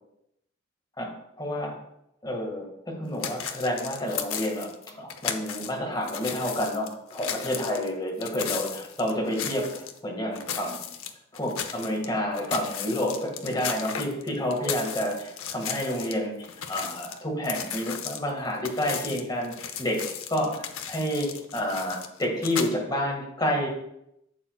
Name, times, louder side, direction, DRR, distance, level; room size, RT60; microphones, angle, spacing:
voice 1, 1.4-1.7 2.2-10.8 11.3-19.5 19.8-23.7, equal, 20° left, -1 dB, 1.9 m, -29 dB
sound 1, 3.2-5.7 6.0-10.0 10.3-12.1 12.3-16.1 16.4-22.7, left 8 dB, 90° left, 0.7 m, -35 dB
11.0 x 7.2 x 2.4 m, 0.79 s
head